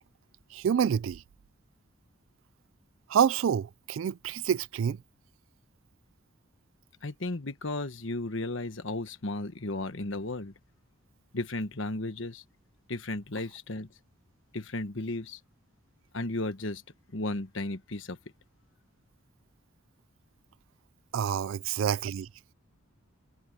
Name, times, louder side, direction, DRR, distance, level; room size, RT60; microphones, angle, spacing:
voice 1, 0.5-1.2 3.1-5.0 21.1-22.3, right 8 dB, 65° right, 0.3 m, -27 dB
voice 2, 7.0-10.5 11.3-12.4 12.9-13.9 14.5-15.4 16.1-16.8 17.1-18.2, left 2 dB, 60° left, 1.3 m, -34 dB
head